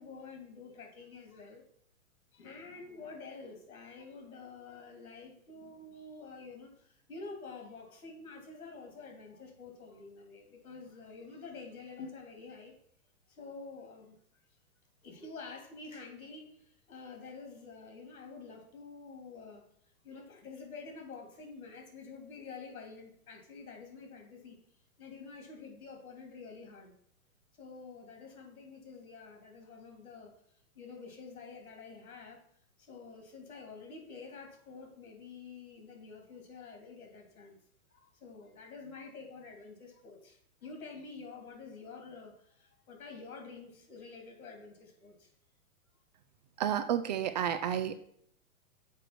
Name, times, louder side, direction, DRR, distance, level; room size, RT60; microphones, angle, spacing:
voice 1, 0.0-1.6 2.3-12.7 13.3-14.2 15.0-19.7 20.0-24.6 25.0-26.9 27.6-30.3 30.7-32.4 32.8-37.6 37.9-45.3, left 4 dB, 75° left, 3 dB, 3.1 m, -48 dB
voice 2, 46.6-47.9, right 9 dB, 35° right, 10 dB, 0.4 m, -31 dB
6.8 x 4.9 x 5.9 m, 0.66 s
hypercardioid pair, 120°, 43 cm